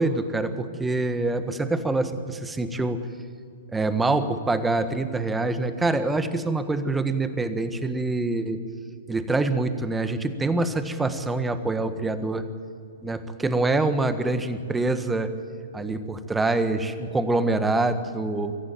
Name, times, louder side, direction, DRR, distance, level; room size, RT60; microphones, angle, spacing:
voice 1, 0.0-3.0 3.7-8.6 9.1-12.4 13.0-15.3 15.7-18.5, right 2 dB, 10° right, 10 dB, 1.5 m, -25 dB
23.0 x 14.5 x 9.2 m, 2.4 s
figure-of-eight pair, 115°, 0 cm